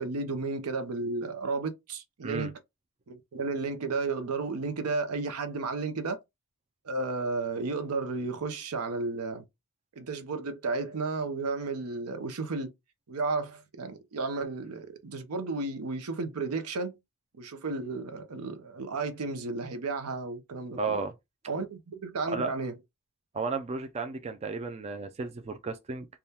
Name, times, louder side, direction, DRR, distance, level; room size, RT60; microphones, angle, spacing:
voice 1, 0.0-2.6 3.1-6.2 6.8-9.4 10.0-12.7 13.1-17.0 17.4-21.0 21.5-22.7, right 3 dB, 85° right, 0.7 m, -33 dB
voice 2, 20.8-21.1 22.2-22.5 23.3-26.1, right 4 dB, 30° right, 0.3 m, -33 dB
3.5 x 2.2 x 2.7 m
head